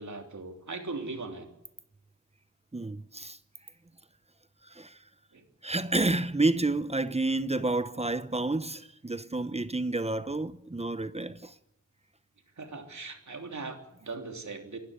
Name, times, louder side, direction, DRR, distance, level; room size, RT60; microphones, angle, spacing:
voice 1, 0.0-1.5 5.3-5.4 12.6-14.8, right 3 dB, 65° right, 3.3 m, -39 dB
voice 2, 2.7-3.4 4.6-5.0 5.6-11.6, right 2 dB, 20° right, 0.8 m, -30 dB
26.5 x 11.5 x 9.7 m
wide cardioid pair, 90°, 31 cm